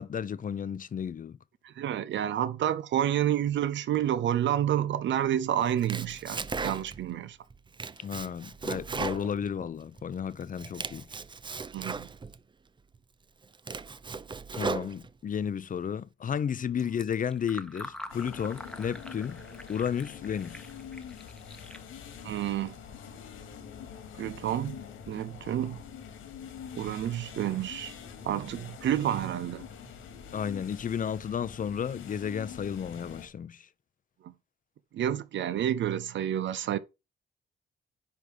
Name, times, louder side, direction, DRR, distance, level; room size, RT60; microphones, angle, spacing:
voice 1, 0.0-1.4 8.0-11.1 14.5-19.4 19.7-20.7 30.3-33.7, left 8 dB, 40° left, 0.8 m, -33 dB
voice 2, 1.6-7.4 11.7-12.1 22.2-22.8 24.2-24.8 25.1-25.8 26.7-27.9 28.2-29.7 34.2-34.3 34.9-36.8, right 11 dB, 70° right, 0.8 m, -29 dB
Domestic sounds home sounds, 5.6-7.1 7.5-10.0 10.4-12.4 12.9-13.0 13.4-15.4, right 4 dB, 25° right, 0.6 m, -37 dB
Fill (with liquid), 16.7-22.9, left 1 dB, 5° left, 1.1 m, -47 dB
sound 1, 18.1-33.3, left 7 dB, 85° left, 2.7 m, -45 dB
10.5 x 3.8 x 6.3 m
cardioid pair, 90°, 20 cm